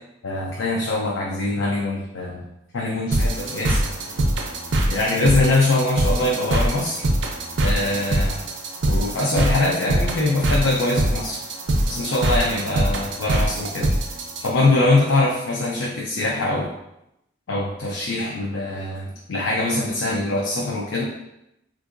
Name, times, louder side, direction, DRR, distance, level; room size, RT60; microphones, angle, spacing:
voice 1, 0.2-2.4 2.7-4.0 4.9-7.1 7.6-8.4 8.9-11.4 11.9-16.7 17.5-21.0, left 2 dB, 75° left, -3 dB, 0.5 m, -23 dB
sound 1, 3.1-14.5, right 1 dB, 60° right, 0.4 m, -23 dB
3.6 x 2.5 x 2.4 m, 0.84 s
head